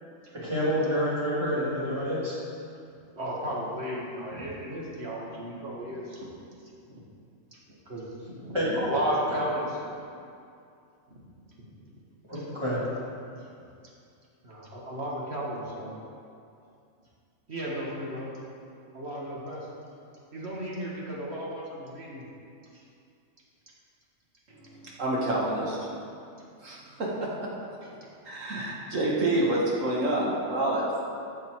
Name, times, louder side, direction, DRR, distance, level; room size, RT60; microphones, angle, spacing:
voice 1, 0.3-2.3 8.5-8.7 12.3-12.8, equal, 20° right, -9 dB, 2.8 m, -28 dB
voice 2, 3.2-6.3 6.9-7.0 7.9-9.8 11.1-11.7 12.3-12.4 14.4-16.0 17.5-18.3 18.9-19.7 20.3-22.3 22.7-22.8, right 1 dB, 50° right, -4 dB, 1.9 m, -34 dB
voice 3, 24.5-25.8 26.6-28.0 28.3-31.0, right 1 dB, 65° right, -4 dB, 1.9 m, -28 dB
14.5 x 5.4 x 4.6 m, 2.5 s
omnidirectional pair, 1.4 m